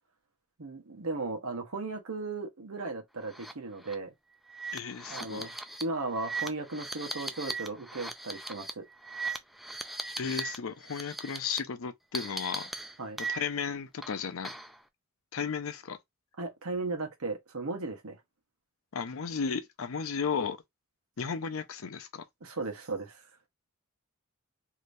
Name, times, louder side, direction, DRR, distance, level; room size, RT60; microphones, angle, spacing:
voice 1, 0.6-4.1 5.1-5.5 5.8-8.9 13.0-13.2 16.4-18.2 22.4-23.2, right 3 dB, 80° right, 0.9 m, -36 dB
sound 1, 3.3-3.5 3.8-3.9 4.5-10.6 10.8-11.6 12.1-13.7 14.0-14.8, right 3 dB, ahead, 0.3 m, -38 dB
voice 2, 4.7-5.5 10.2-12.7 13.3-14.5 15.3-16.0 18.9-20.6 21.2-22.2, left 6 dB, 70° left, 0.6 m, -34 dB
3.3 x 2.8 x 2.6 m
head